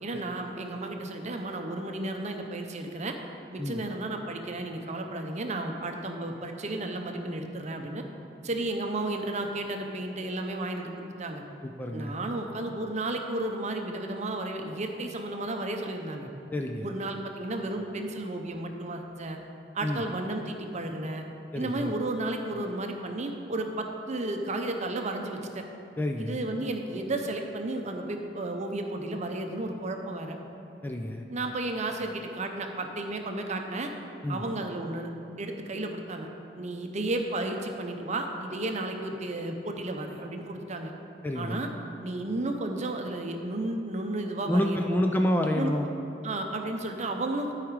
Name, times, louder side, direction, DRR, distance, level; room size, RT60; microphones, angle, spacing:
voice 1, 0.0-3.2 3.5-8.0 8.4-11.4 11.9-16.3 16.8-19.4 19.7-21.2 21.5-25.6 26.2-30.4 31.3-33.9 34.3-35.1 35.4-36.3 36.6-40.9 41.3-41.7 42.0-45.0 45.5-45.7 46.2-47.5, right 2 dB, 40° right, 4 dB, 0.7 m, -33 dB
voice 2, 11.6-12.1 16.5-16.9 19.8-20.0 21.5-21.9 26.0-26.4 30.8-31.3 34.2-34.4 41.2-41.6 44.5-45.9, left 1 dB, 10° left, 3 dB, 0.3 m, -28 dB
12.0 x 4.9 x 4.8 m, 2.8 s
head